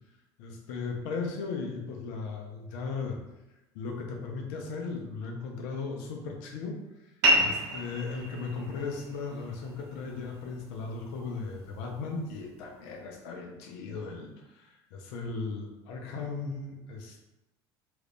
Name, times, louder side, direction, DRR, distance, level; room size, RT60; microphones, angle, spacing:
voice 1, 0.4-3.2 3.7-6.8 7.4-17.2, left 4 dB, 70° left, 2 dB, 0.7 m, -37 dB
sound 1, 7.2-12.3, right 1 dB, 70° right, 0.8 m, -31 dB
3.1 x 2.5 x 3.3 m, 0.95 s
hypercardioid pair, 75°, 14 cm